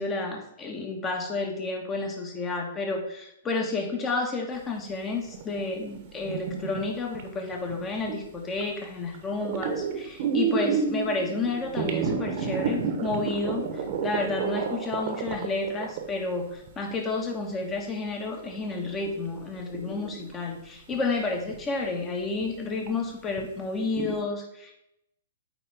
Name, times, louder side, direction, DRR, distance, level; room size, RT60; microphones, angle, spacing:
voice 1, 0.0-24.8, left 3 dB, 20° left, 2 dB, 1.6 m, -31 dB
sound 1, 5.2-8.2 8.6-8.9 9.1-17.1 17.7-17.8 18.2-20.6 20.9-21.1 21.5-21.6 22.3-22.5 22.9-23.0 23.3-23.4 23.8-24.1, right 5 dB, 50° right, 1.1 m, -30 dB
9.0 x 3.9 x 3.6 m, 0.81 s
hypercardioid pair, 120°, 0 cm